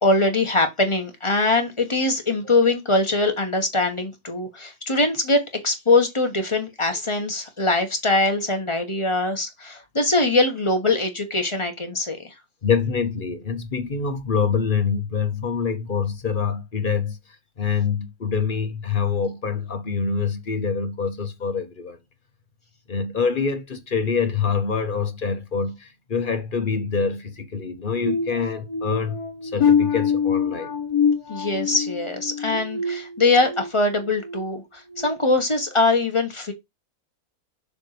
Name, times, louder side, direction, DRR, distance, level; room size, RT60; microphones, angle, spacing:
voice 1, 0.0-12.3 31.3-36.5, left 2 dB, 20° left, 1.3 m, -22 dB
voice 2, 12.6-17.2 17.6-22.0 22.9-30.7, left 6 dB, 40° left, 1.0 m, -25 dB
sound 1, 28.0-33.7 34.1-34.4 34.9-35.1, left 6 dB, 80° left, 1.8 m, -25 dB
6.9 x 2.9 x 4.9 m
omnidirectional pair, 1.6 m